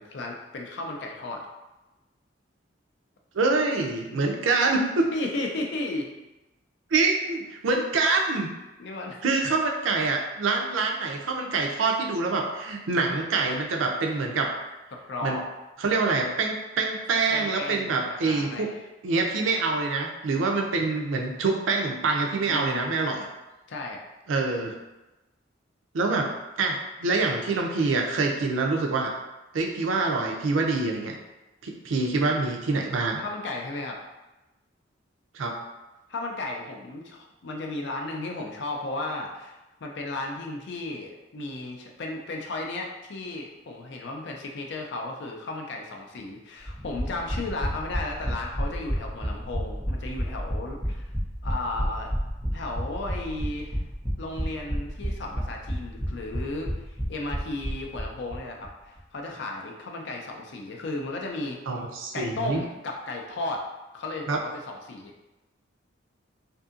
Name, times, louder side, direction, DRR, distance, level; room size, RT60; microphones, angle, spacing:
voice 1, 0.0-1.4 5.1-6.1 8.8-9.2 14.9-15.4 17.3-18.8 22.5-22.9 23.7-24.0 33.2-34.0 36.1-51.1 51.4-52.1 52.5-53.8 54.2-56.7 57.1-61.6 62.1-63.6 63.9-65.1, left 2 dB, 65° left, 1 dB, 0.5 m, -34 dB
voice 2, 3.3-5.1 6.9-8.5 9.2-14.5 15.2-15.4 15.8-18.7 19.0-23.2 24.3-24.8 25.9-26.3 26.6-29.1 29.5-31.1 31.6-33.2 35.3-35.6 61.7-62.6 64.3-64.4, right 3 dB, 90° right, 2 dB, 0.4 m, -25 dB
sound 1, 46.6-58.4 58.6-58.7 59.0-59.1, equal, 5° right, 0.8 m, -31 dB
2.6 x 2.6 x 2.4 m, 1.0 s
head